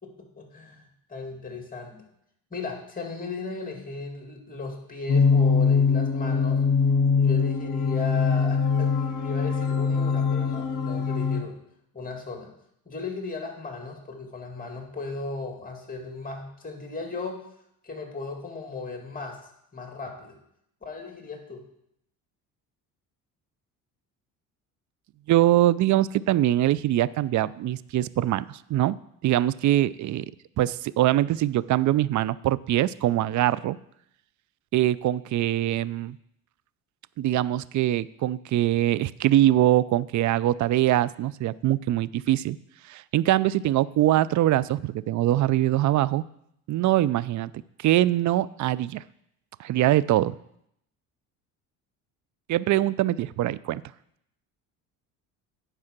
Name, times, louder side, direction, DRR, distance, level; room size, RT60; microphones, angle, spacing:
voice 1, 0.0-2.0 2.5-6.6 7.1-11.6 11.9-12.5 12.9-17.4 17.8-19.4 19.7-20.4 20.8-21.6, left 3 dB, 20° left, 2 dB, 2.6 m, -36 dB
sound 1, 5.1-11.4, left 5 dB, 45° left, 1.7 m, -23 dB
voice 2, 25.3-29.0 29.2-30.2 30.6-33.8 34.7-36.2 37.2-42.6 42.9-46.2 46.7-47.5 47.8-49.0 49.6-50.3 52.5-53.8, right 14 dB, 45° right, 19 dB, 0.4 m, -23 dB
9.7 x 4.8 x 5.9 m, 0.75 s
supercardioid pair, 70°, 42 cm